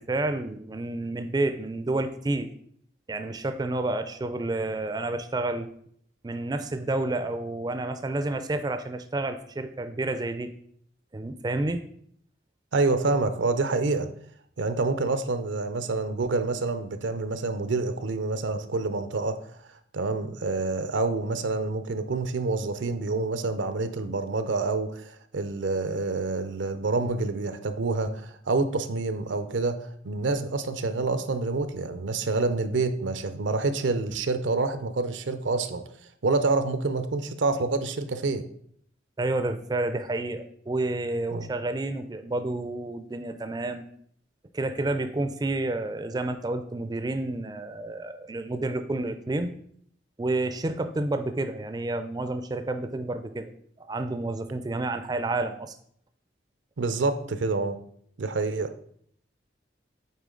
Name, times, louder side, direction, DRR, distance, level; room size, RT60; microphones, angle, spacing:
voice 1, 0.0-2.5 3.1-5.7 6.2-10.5 11.1-11.8 39.2-43.8 44.5-49.5 50.2-53.5 53.8-55.7, right 2 dB, 20° right, 9 dB, 0.4 m, -30 dB
voice 2, 12.7-14.1 14.6-19.4 19.9-35.8 36.2-38.4 41.3-41.5 56.8-57.8 58.2-58.7, right 3 dB, 85° right, 10 dB, 0.6 m, -27 dB
8.2 x 4.4 x 3.7 m, 0.65 s
head